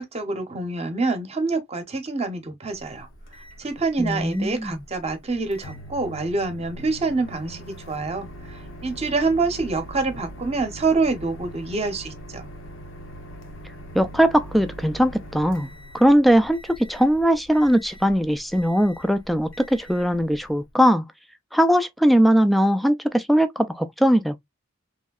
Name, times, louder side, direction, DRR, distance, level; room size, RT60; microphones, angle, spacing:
voice 1, 0.0-3.1 3.6-12.5, right 3 dB, 30° right, 0.8 m, -26 dB
Microwave oven, 2.7-20.7, right 1 dB, 70° left, 0.7 m, -42 dB
voice 2, 4.0-4.8 13.9-15.7 15.9-21.0 21.5-24.4, equal, ahead, 0.3 m, -20 dB
3.1 x 2.7 x 2.2 m
head